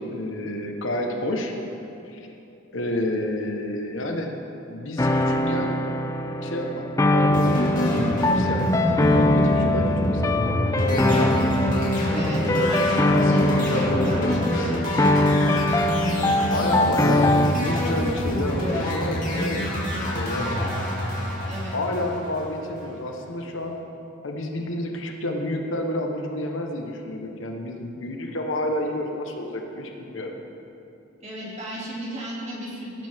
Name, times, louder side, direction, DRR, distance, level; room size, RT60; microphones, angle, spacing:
voice 1, 0.1-1.5 2.1-2.3 2.7-4.3 4.7-5.7 6.4-10.5 10.8-11.5 12.4-14.7 16.1-20.5 20.8-20.9 21.7-23.8 24.2-30.3, left 1 dB, 80° left, 2 dB, 1.2 m, -30 dB
sound 1, 5.0-17.5, left 1 dB, 15° left, 0.4 m, -22 dB
sound 2, 7.3-22.7, equal, 40° left, 2.3 m, -26 dB
voice 2, 12.1-14.7 16.2-16.6 21.5-21.8 31.2-33.1, right 1 dB, 35° right, -6 dB, 2.7 m, -36 dB
17.5 x 8.3 x 3.6 m, 2.8 s
head